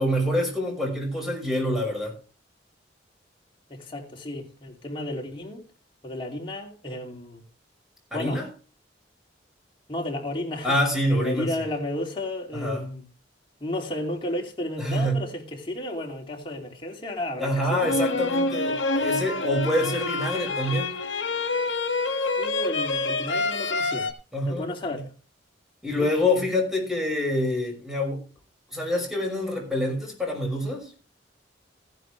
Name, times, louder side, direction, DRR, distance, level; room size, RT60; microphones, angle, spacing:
voice 1, 0.0-2.1 8.1-8.5 10.6-11.5 12.5-12.8 14.8-15.2 17.4-20.9 24.3-25.0 25.8-28.2 28.7-30.9, left 1 dB, ahead, 5.9 m, -26 dB
voice 2, 3.7-5.6 6.0-7.4 8.1-8.4 9.9-10.8 11.1-13.1 13.6-18.0 22.4-24.1 24.5-25.1 25.9-26.1, left 1 dB, 30° left, 2.9 m, -33 dB
sound 1, 17.8-24.1, left 3 dB, 75° left, 1.7 m, -27 dB
15.5 x 11.5 x 3.3 m
head